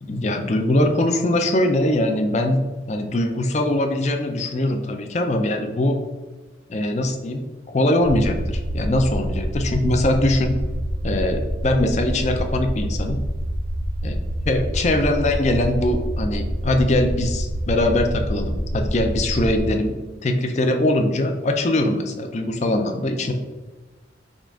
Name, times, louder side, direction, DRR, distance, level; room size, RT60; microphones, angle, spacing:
voice 1, 0.0-2.6 2.9-6.0 6.7-10.6 11.0-13.2 14.0-14.2 14.5-20.0 20.2-23.3, left 1 dB, 40° left, 5 dB, 0.4 m, -22 dB
sound 1, 8.0-19.7, right 1 dB, 50° right, 0.5 m, -27 dB
5.4 x 2.5 x 3.5 m, 1.2 s
head